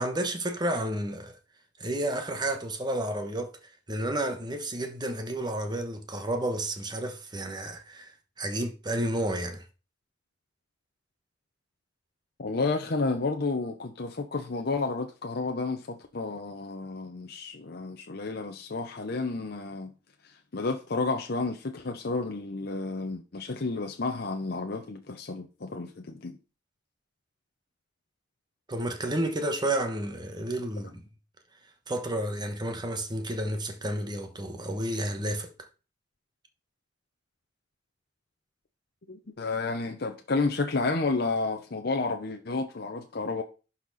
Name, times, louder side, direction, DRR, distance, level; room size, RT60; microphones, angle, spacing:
voice 1, 0.0-1.3 1.8-3.6 3.9-8.1 8.4-9.6 28.7-31.0 31.9-35.5, right 1 dB, 25° right, 1.2 m, -31 dB
voice 2, 12.4-19.9 20.5-26.4 39.1-43.4, left 3 dB, 60° left, 0.7 m, -31 dB
11.0 x 4.2 x 4.1 m
head